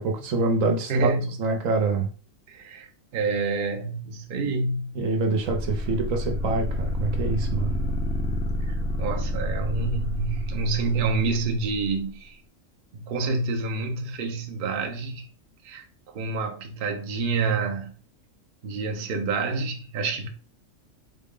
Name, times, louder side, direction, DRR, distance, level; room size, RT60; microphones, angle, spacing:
voice 1, 0.0-1.1 1.4-2.1 4.9-7.8, right 3 dB, 80° right, 1.1 m, -25 dB
voice 2, 0.9-1.3 2.5-2.9 3.1-4.9 8.6-12.4 12.9-15.2 15.6-17.9 18.6-20.3, right 3 dB, 55° right, 0.7 m, -28 dB
sound 1, 5.5-11.6, left 1 dB, 5° right, 0.4 m, -28 dB
3.9 x 2.1 x 3.7 m
omnidirectional pair, 1.4 m